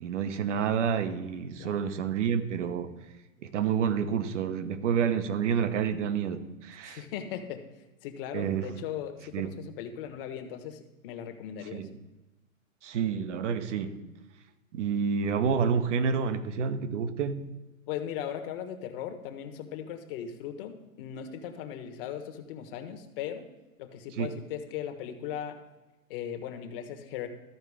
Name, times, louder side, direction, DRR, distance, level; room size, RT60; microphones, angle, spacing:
voice 1, 0.0-2.9 3.4-7.0 8.3-8.7 9.3-9.5 11.7-12.0 12.8-14.0 14.7-17.5 24.2-24.3, right 7 dB, 55° right, 1.0 m, -29 dB
voice 2, 6.8-7.6 8.0-11.8 17.9-23.4 23.8-25.6 26.1-27.3, left 9 dB, 40° left, 1.2 m, -38 dB
13.5 x 4.5 x 4.9 m
hypercardioid pair, 130°, 42 cm